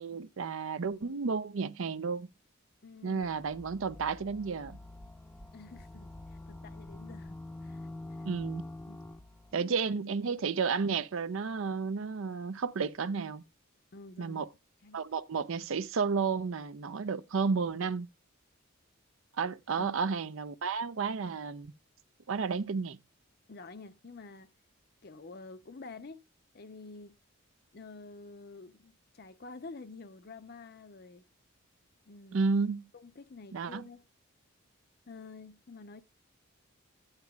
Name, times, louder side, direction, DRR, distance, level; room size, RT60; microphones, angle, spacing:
voice 1, 0.0-2.3 3.0-4.8 8.2-8.6 9.5-13.4 14.2-14.5 14.9-18.1 19.4-21.7 22.3-23.0 32.3-32.8 33.5-33.8, right 5 dB, 70° right, 0.5 m, -32 dB
voice 2, 2.8-3.3 5.5-8.3 8.9-9.0 9.5-9.9 13.9-14.4 14.8-15.0 19.8-19.9 23.5-24.5 25.0-26.2 26.5-27.2 27.7-31.2 32.1-32.5 32.9-34.0 35.1-36.0, left 3 dB, 50° left, 0.6 m, -49 dB
sound 1, 3.2-9.5, left 2 dB, 5° left, 0.6 m, -46 dB
13.0 x 8.9 x 2.3 m
head